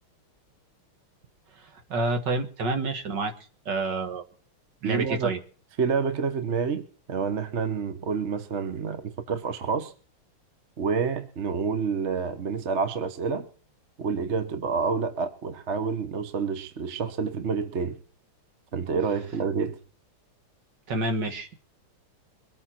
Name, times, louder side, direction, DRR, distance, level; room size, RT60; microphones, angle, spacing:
voice 1, 1.6-3.3 3.7-4.2 4.8-5.4 20.9-21.6, right 2 dB, 55° right, 6 dB, 2.2 m, -28 dB
voice 2, 4.8-5.3 5.8-9.9 10.8-13.5 14.0-18.0 18.7-19.8, right 5 dB, 40° right, 10 dB, 1.2 m, -28 dB
23.0 x 9.1 x 4.4 m, 0.41 s
omnidirectional pair, 2.3 m